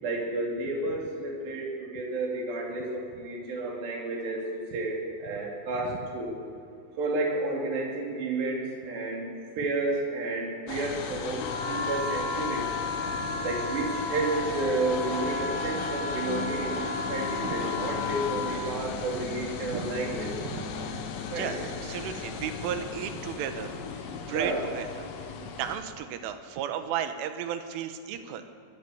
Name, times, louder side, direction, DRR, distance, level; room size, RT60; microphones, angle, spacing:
voice 1, 0.0-4.4 4.7-6.4 7.0-12.6 13.4-20.3 21.3-21.5 24.3-24.7, right 2 dB, 55° right, -1 dB, 5.7 m, -31 dB
sound 1, 10.7-25.8, left 6 dB, 75° left, 4.0 m, -37 dB
sound 2, 11.4-18.6, left 3 dB, 30° left, 2.7 m, -33 dB
voice 2, 19.7-20.7 21.4-25.1 25.4-28.4, right 9 dB, 75° right, 8 dB, 3.7 m, -35 dB
24.0 x 19.0 x 7.2 m, 2.5 s
omnidirectional pair, 5.8 m